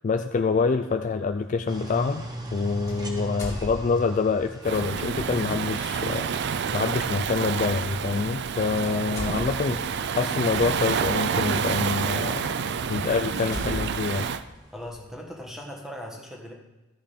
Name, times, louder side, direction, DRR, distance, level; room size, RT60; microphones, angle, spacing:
voice 1, 0.0-2.3 2.5-6.3 6.7-12.6 12.9-14.3, left 4 dB, 40° left, 8 dB, 0.3 m, -26 dB
sound 1, 0.8-1.0 2.9-4.4 5.3-5.5 7.3-7.4 8.4-8.5 8.8-11.4 12.1-12.2 12.7-12.8 13.4-15.2, left 1 dB, 15° left, 2.1 m, -38 dB
sound 2, 1.7-14.9, right 1 dB, 20° right, 1.1 m, -43 dB
Waves surf, 4.6-14.4, right 6 dB, 55° right, 0.4 m, -28 dB
voice 2, 14.7-16.5, equal, ahead, 0 dB, 1.4 m, -39 dB
13.5 x 5.3 x 5.1 m, 1.1 s
head